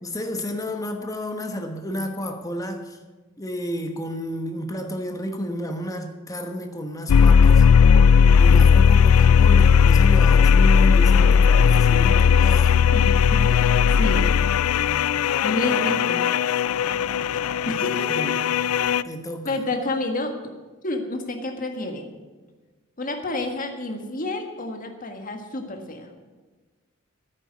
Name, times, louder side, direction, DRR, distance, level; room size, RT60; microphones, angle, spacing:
voice 1, 0.0-3.0 3.4-7.6 8.4-12.8 18.1-18.4 19.0-19.6, equal, 15° left, 5 dB, 1.2 m, -31 dB
sound 1, 7.1-19.0, left 6 dB, 80° left, 0.4 m, -16 dB
voice 2, 12.9-14.3 15.4-16.3 17.7-18.1 19.4-20.3 20.8-22.1 23.0-26.1, left 2 dB, 40° left, 4 dB, 1.6 m, -29 dB
10.5 x 9.1 x 8.2 m, 1.3 s
head